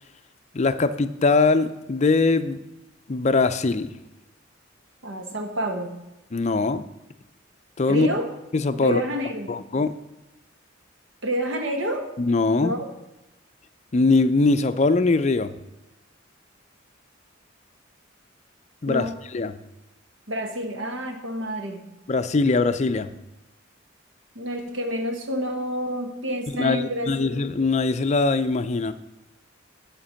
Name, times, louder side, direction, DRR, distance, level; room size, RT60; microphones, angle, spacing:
voice 1, 0.5-2.6 3.1-3.9 6.3-6.8 7.8-8.1 8.5-9.0 9.5-9.9 12.2-12.7 13.9-15.5 18.8-19.1 19.3-19.6 22.1-23.1 26.6-28.9, left 3 dB, 35° left, 11 dB, 0.5 m, -21 dB
voice 2, 5.0-6.0 7.9-8.3 8.8-9.5 11.2-12.1 12.6-12.8 18.9-19.2 20.3-21.8 24.3-27.3, equal, 85° right, 5 dB, 1.4 m, -29 dB
10.0 x 5.2 x 6.3 m, 0.96 s
head